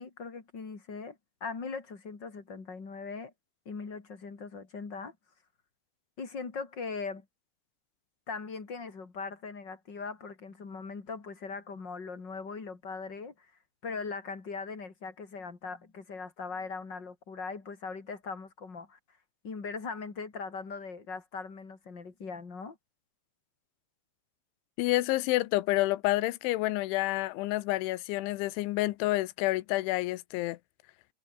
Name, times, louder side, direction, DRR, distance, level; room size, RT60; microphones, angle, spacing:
voice 1, 0.0-3.3 3.6-5.1 6.2-7.2 8.3-13.5 13.8-19.0 19.4-22.8, left 4 dB, 25° left, 3.0 m, -40 dB
voice 2, 24.8-30.6, left 18 dB, 85° left, 3.2 m, -29 dB
omnidirectional pair, 5.5 m